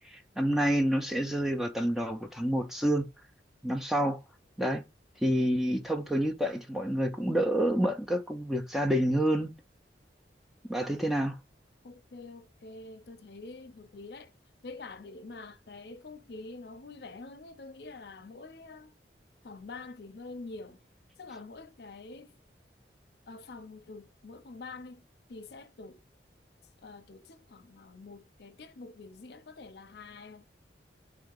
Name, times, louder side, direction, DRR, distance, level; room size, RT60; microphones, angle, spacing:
voice 1, 0.0-3.1 3.6-4.2 4.6-4.8 5.2-9.5 10.7-11.3, equal, ahead, 0.4 m, -28 dB
voice 2, 11.8-14.3 14.6-18.9 19.4-20.8 21.2-22.3 23.3-25.0 25.3-26.0 26.8-30.5, left 3 dB, 65° left, 0.6 m, -46 dB
3.6 x 2.8 x 3.6 m
head